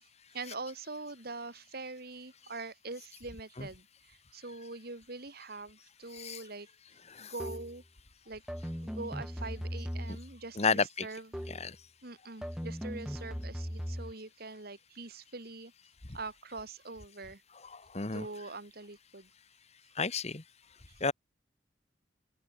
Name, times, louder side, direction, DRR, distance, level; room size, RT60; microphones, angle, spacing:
voice 1, 0.3-6.7 7.2-7.8 8.3-8.4 8.8-11.4 12.0-15.7 16.1-17.4 18.1-19.3 20.9-21.0, right 3 dB, 55° right, 2.7 m, -43 dB
sound 1, 7.4-7.8 8.5-10.4 11.3-11.7 12.4-14.1, equal, 5° right, 5.4 m, -39 dB
voice 2, 10.5-11.1 11.5-11.7 17.6-18.3 20.0-20.4 21.0-21.1, left 4 dB, 35° left, 1.5 m, -32 dB
open air
head